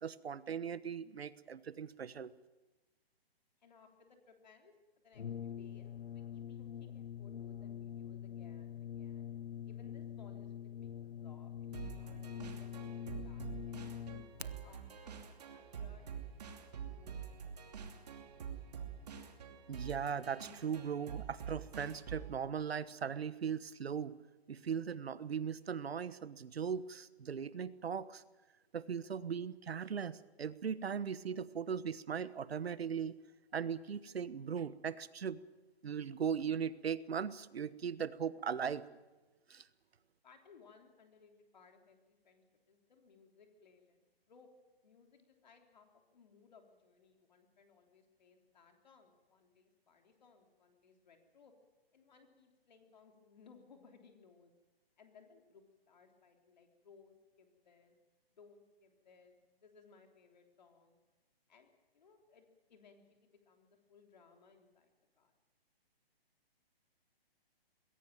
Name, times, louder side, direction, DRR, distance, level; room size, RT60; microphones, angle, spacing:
voice 1, 0.0-2.3 19.7-24.2 24.5-28.2 28.7-33.1 33.5-35.4 35.8-38.9 39.5-39.7, right 7 dB, 75° right, 16 dB, 1.2 m, -39 dB
voice 2, 3.6-4.7 5.0-9.3 9.6-14.0 14.4-16.2 16.9-17.6 40.2-44.5 44.8-51.5 51.9-54.5 55.0-58.0 58.3-61.0 61.5-65.3, left 5 dB, 45° left, 4 dB, 3.5 m, -64 dB
Brass instrument, 5.2-14.5, left 10 dB, 90° left, 1.0 m, -45 dB
sound 1, 11.7-22.4, right 7 dB, 40° right, 2.6 m, -47 dB
22.0 x 17.0 x 9.2 m, 1.1 s
hypercardioid pair, 175°, 31 cm